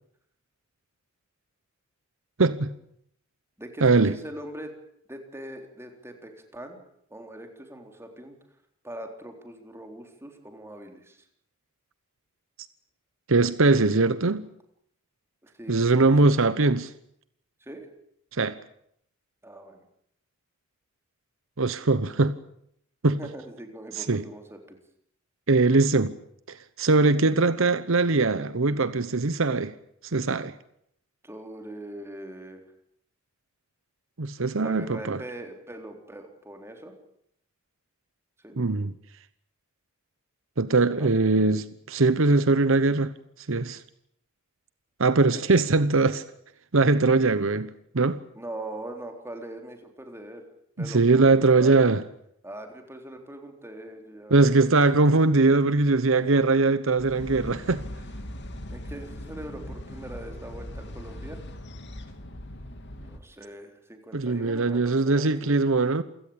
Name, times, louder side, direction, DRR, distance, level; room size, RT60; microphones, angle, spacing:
voice 1, 2.4-2.7 3.8-4.1 13.3-14.4 15.7-16.9 18.3-18.6 21.6-22.4 23.0-23.2 24.0-24.2 25.5-26.1 26.5-29.7 30.1-30.5 34.2-35.2 38.6-38.9 40.6-43.1 43.5-43.8 45.0-46.2 46.7-47.7 47.9-48.2 50.8-52.0 54.3-57.8 64.1-66.0, right 3 dB, 70° right, 1.0 m, -21 dB
voice 2, 3.6-4.7 5.1-6.8 7.1-8.3 8.8-11.2 15.4-16.3 17.6-17.9 19.4-19.8 23.2-24.8 31.2-32.6 34.6-36.9 38.4-38.6 41.0-41.1 45.1-45.5 48.3-50.5 50.8-51.8 52.4-54.6 56.2-56.6 58.7-61.4 63.0-65.6, right 1 dB, 10° right, 3.8 m, -42 dB
sound 1, 57.0-63.2, left 1 dB, 55° left, 2.7 m, -40 dB
28.0 x 17.0 x 8.8 m
head